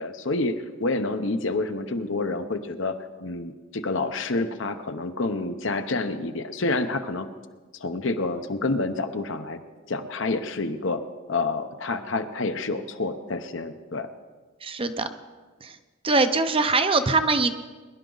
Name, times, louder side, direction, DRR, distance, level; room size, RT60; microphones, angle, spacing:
voice 1, 0.0-7.3 7.8-9.6 9.9-11.0 11.3-14.1, left 3 dB, 60° left, 8 dB, 0.9 m, -28 dB
voice 2, 14.6-15.1 15.6-15.7 16.0-17.5, right 3 dB, 25° right, 9 dB, 0.6 m, -22 dB
22.0 x 11.0 x 4.0 m, 1.4 s
head